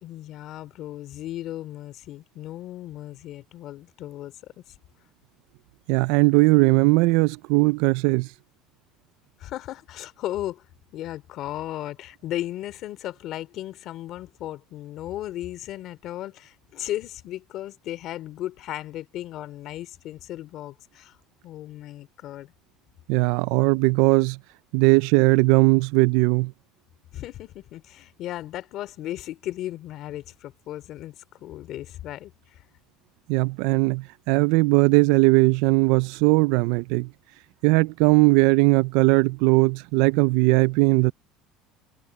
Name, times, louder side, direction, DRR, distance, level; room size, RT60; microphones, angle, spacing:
voice 1, 0.0-4.7 9.4-10.7 10.9-21.2 21.4-22.5 27.1-32.6, left 13 dB, 55° left, 2.8 m, -36 dB
voice 2, 5.9-8.3 23.1-24.4 24.7-26.5 33.3-37.1 37.6-41.1, right 24 dB, 75° right, 0.4 m, -19 dB
cardioid pair, 130°, 0 cm